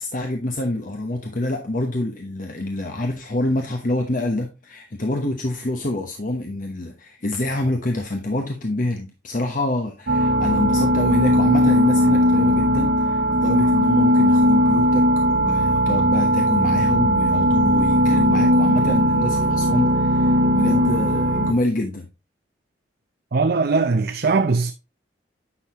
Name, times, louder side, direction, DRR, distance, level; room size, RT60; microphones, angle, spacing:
voice 1, 0.0-22.1, left 1 dB, 50° left, 1.0 m, -26 dB
sound 1, 10.1-21.5, equal, 75° right, 1.4 m, -18 dB
voice 2, 23.3-24.7, right 4 dB, 60° right, 0.6 m, -20 dB
9.7 x 6.4 x 3.0 m
head